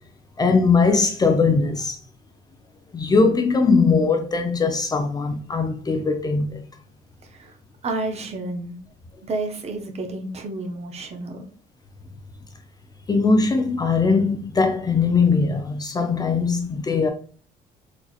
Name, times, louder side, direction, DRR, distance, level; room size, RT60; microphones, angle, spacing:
voice 1, 0.4-2.0 2.9-6.6 13.1-17.1, left 4 dB, 25° left, 0.5 m, -20 dB
voice 2, 7.8-8.8 9.2-11.5, right 2 dB, 40° right, 0.7 m, -30 dB
4.0 x 2.9 x 2.3 m
cardioid pair, 110°, 17 cm